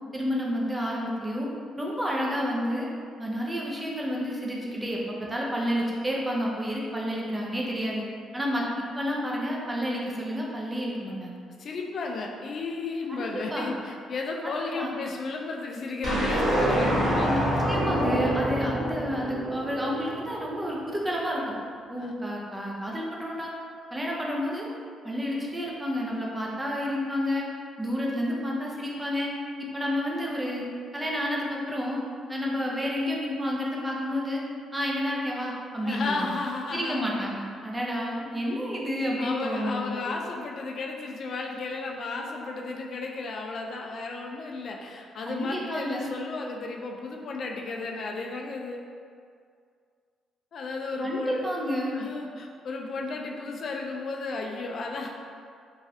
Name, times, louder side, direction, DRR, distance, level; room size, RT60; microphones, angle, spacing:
voice 1, 0.1-1.5 1.8-2.9 3.2-8.1 8.3-11.4 13.1-13.8 14.6-14.9 17.3-17.4 17.7-21.6 21.9-23.5 23.9-24.7 25.0-27.5 27.8-29.3 29.6-32.0 32.3-34.4 34.7-36.3 36.7-40.2 45.3-46.1 51.0-52.0, equal, 15° right, -3 dB, 0.6 m, -30 dB
voice 2, 11.6-17.4 22.0-22.1 35.8-37.1 39.2-48.8 50.5-51.5 51.9-55.1, left 3 dB, 55° left, 1 dB, 0.3 m, -34 dB
sound 1, 16.0-20.4, right 1 dB, 60° right, 1.4 m, -26 dB
3.1 x 2.4 x 2.7 m, 2.2 s
cardioid pair, 90°, 0 cm